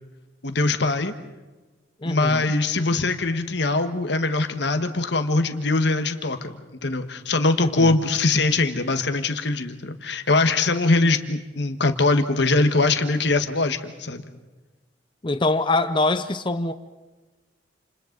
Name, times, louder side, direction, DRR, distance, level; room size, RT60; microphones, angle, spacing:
voice 1, 0.4-1.1 2.0-6.5 6.8-14.2, left 3 dB, 65° left, 1.5 m, -22 dB
voice 2, 2.0-2.5 7.6-7.9 15.2-16.7, left 2 dB, 25° left, 0.7 m, -24 dB
29.5 x 28.5 x 4.0 m
head